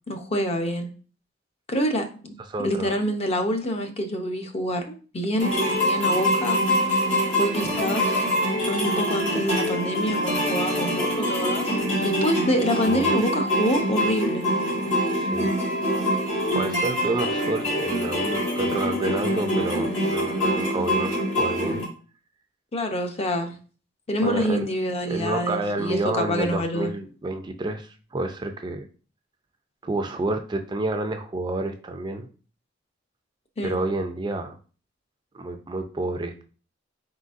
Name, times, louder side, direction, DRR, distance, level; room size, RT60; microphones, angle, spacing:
voice 1, 0.1-0.9 1.7-2.3 2.6-5.5 5.8-6.8 7.4-8.2 8.7-14.4 22.7-23.5 24.1-26.9 33.6-33.8, equal, 35° left, 5 dB, 0.6 m, -26 dB
voice 2, 2.5-3.0 12.9-13.1 15.1-15.5 16.5-21.8 24.2-24.7 25.1-28.9 29.8-32.3 33.6-34.6 35.3-36.4, right 2 dB, 25° right, 6 dB, 0.4 m, -29 dB
sound 1, 5.4-21.9, equal, 75° left, 1.7 m, -25 dB
4.1 x 3.8 x 2.4 m, 0.38 s
head